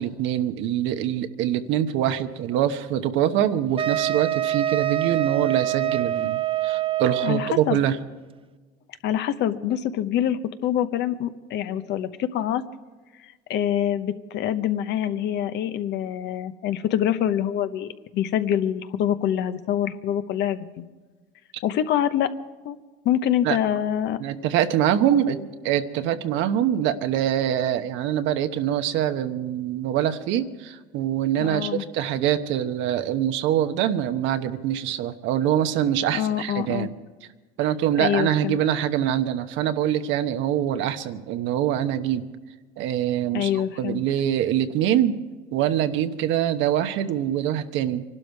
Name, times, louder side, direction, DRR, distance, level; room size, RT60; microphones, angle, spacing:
voice 1, 0.0-8.0 23.4-23.6 24.2-36.9 37.6-42.3 42.8-45.2 45.5-48.0, right 10 dB, 65° right, 9 dB, 1.1 m, -24 dB
Wind instrument woodwind instrument, 3.8-7.6, right 12 dB, 25° right, 0.4 m, -25 dB
voice 2, 7.2-7.8 9.0-12.6 13.2-20.8 21.6-22.3 22.6-22.8 23.0-24.2 31.4-31.8 36.1-36.9 38.0-38.6 43.3-44.0, left 10 dB, 60° left, 10 dB, 1.0 m, -25 dB
24.5 x 12.0 x 4.7 m, 1.3 s
supercardioid pair, 95°, 21 cm